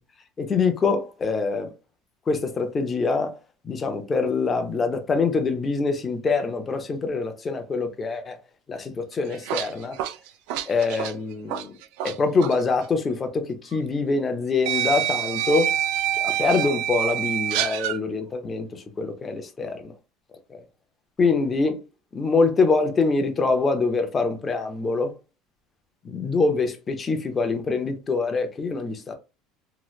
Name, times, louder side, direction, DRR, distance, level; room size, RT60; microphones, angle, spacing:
voice 1, 0.4-1.7 2.3-3.4 3.6-8.4 8.7-10.0 10.7-11.8 12.0-15.7 16.2-19.9 20.5-20.6 21.2-21.8 22.1-25.1 26.0-29.1, left 4 dB, 20° left, 0.5 m, -24 dB
sound 1, 9.1-12.1 12.4-12.6 13.7-13.8 14.6-18.0, right 11 dB, 65° right, 0.3 m, -26 dB
3.1 x 2.8 x 2.3 m
cardioid pair, 165°, 0 cm